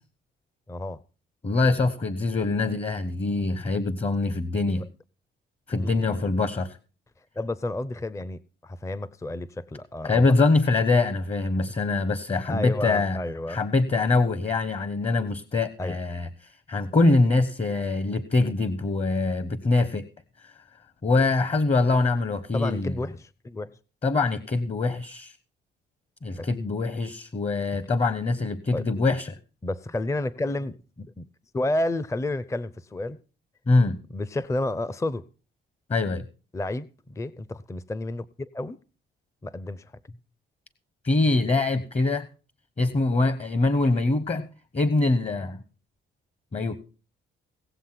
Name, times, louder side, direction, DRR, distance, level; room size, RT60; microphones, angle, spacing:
voice 1, 0.7-1.0 4.7-4.8 5.7-6.3 7.4-10.4 12.5-13.6 15.8-16.0 22.5-23.7 26.4-26.7 28.7-28.9 29.6-31.3 31.5-33.2 34.1-35.2 36.5-38.8 39.4-39.9, left 1 dB, 15° left, 18 dB, 0.6 m, -31 dB
voice 2, 1.4-4.8 5.7-6.7 10.0-13.2 13.5-16.3 16.7-20.1 20.4-20.5 21.0-22.9 24.0-25.3 26.2-29.4 33.7-34.0 35.9-36.2 41.0-42.3 42.8-44.5 44.7-45.6 46.5-46.8, left 3 dB, 30° left, 15 dB, 1.1 m, -24 dB
18.0 x 7.4 x 5.8 m, 0.37 s
cardioid pair, 90°, 20 cm